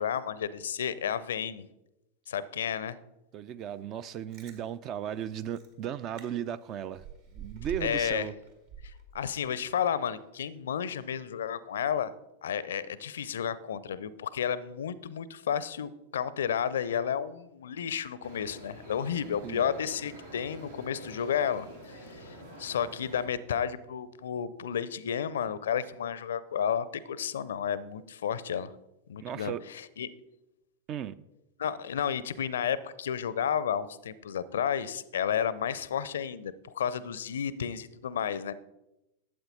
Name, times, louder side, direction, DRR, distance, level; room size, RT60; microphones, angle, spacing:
voice 1, 0.0-1.6 2.3-3.0 7.8-8.3 8.8-12.1 12.4-28.7 29.1-30.1 31.6-38.5, left 8 dB, 65° left, 0.5 m, -32 dB
voice 2, 3.3-7.0 7.3-8.3 19.4-19.6 29.2-29.6 30.9-31.2, right 9 dB, 35° right, 0.4 m, -36 dB
Chewing mastication, 4.1-4.6 5.2-5.3 5.5-5.7 6.2-6.3 6.6-8.1 8.4-9.7 10.1-10.2, right 6 dB, 50° right, 1.7 m, -44 dB
sound 1, 18.2-23.3, equal, 75° right, 2.2 m, -47 dB
12.0 x 8.0 x 4.0 m
figure-of-eight pair, 90°, 0 cm